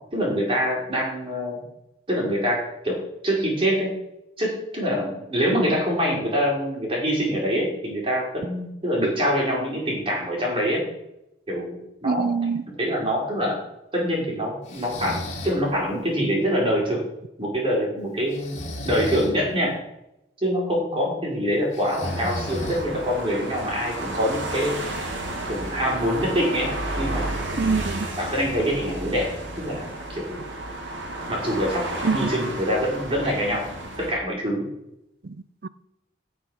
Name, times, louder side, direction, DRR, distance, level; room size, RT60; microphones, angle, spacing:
voice 1, 0.1-1.6 2.1-2.6 2.8-3.9 4.4-10.8 11.5-12.4 12.7-13.5 13.9-15.2 15.4-17.0 17.4-18.6 18.8-19.7 20.4-24.8 25.4-26.7 27.0-27.3 28.2-29.3 29.5-30.4 31.3-31.9 32.1-33.7 34.0-34.7, equal, 30° right, -2 dB, 4.5 m, -25 dB
voice 2, 12.0-12.7 27.6-28.1 32.0-32.3 35.2-35.4 35.6-35.7, right 4 dB, 55° right, 17 dB, 0.5 m, -24 dB
Breathing, 14.7-15.6 18.3-19.3 21.7-23.1, left 1 dB, 35° left, 2.7 m, -33 dB
sound 1, 22.0-34.1, right 1 dB, 85° right, 2.4 m, -32 dB
15.5 x 5.9 x 6.3 m, 0.86 s
head